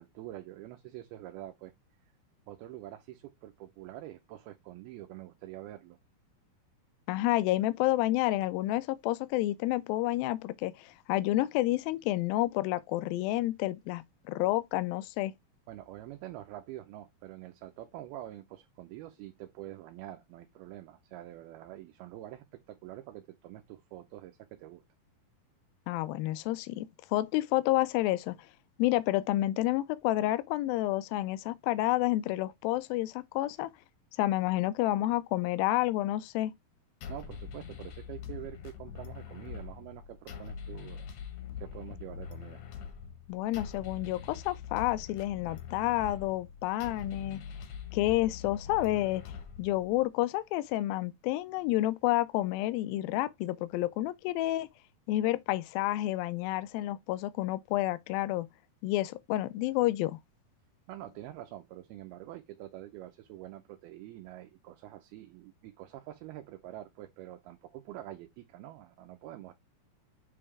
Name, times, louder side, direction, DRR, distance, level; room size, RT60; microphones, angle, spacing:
voice 1, 0.0-1.7 2.5-6.0 15.7-24.8 37.1-41.1 41.6-42.6 60.9-69.5, right 14 dB, 85° right, 2.7 m, -46 dB
voice 2, 7.1-15.3 25.9-28.4 28.8-33.7 34.2-36.5 43.3-47.4 47.9-49.2 49.6-54.7 55.1-58.5 58.8-60.2, left 16 dB, 80° left, 2.3 m, -29 dB
sound 1, 37.0-50.0, left 7 dB, 65° left, 1.9 m, -43 dB
7.7 x 3.7 x 3.3 m
omnidirectional pair, 4.4 m